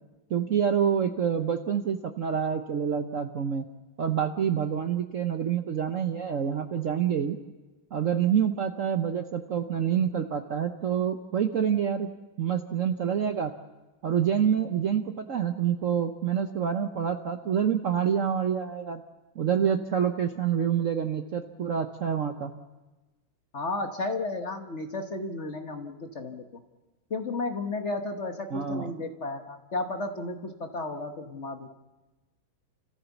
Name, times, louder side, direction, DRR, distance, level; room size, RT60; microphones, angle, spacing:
voice 1, 0.3-3.7 4.0-7.4 7.9-12.1 12.4-13.5 14.0-19.0 19.4-22.5 28.5-28.9, right 8 dB, 55° right, 6 dB, 0.9 m, -27 dB
voice 2, 23.5-26.4 27.1-31.7, left 2 dB, 40° left, 5 dB, 1.2 m, -33 dB
30.0 x 14.5 x 7.1 m, 1.1 s
omnidirectional pair, 2.2 m